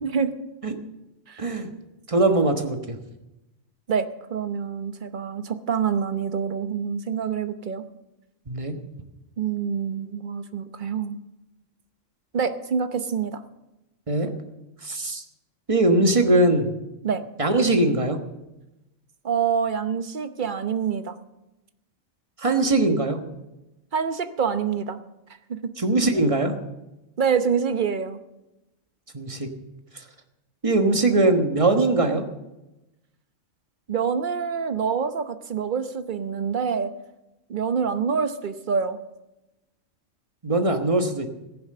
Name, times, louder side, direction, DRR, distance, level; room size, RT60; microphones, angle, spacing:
voice 1, 0.0-0.3 1.3-1.4 3.9-7.8 9.4-11.2 12.3-13.4 17.0-17.2 19.2-21.2 23.9-25.0 25.5-25.6 27.2-28.2 33.9-36.9 37.5-39.0, right 6 dB, 45° right, 10 dB, 0.9 m, -26 dB
voice 2, 1.4-1.7 2.1-3.0 8.5-8.7 14.1-14.3 14.8-15.2 15.7-16.7 17.4-18.2 22.4-23.2 25.8-26.5 29.1-29.5 30.6-32.2 40.4-41.3, right 2 dB, 25° right, 5 dB, 1.3 m, -21 dB
15.0 x 11.0 x 6.6 m, 0.98 s
omnidirectional pair, 1.4 m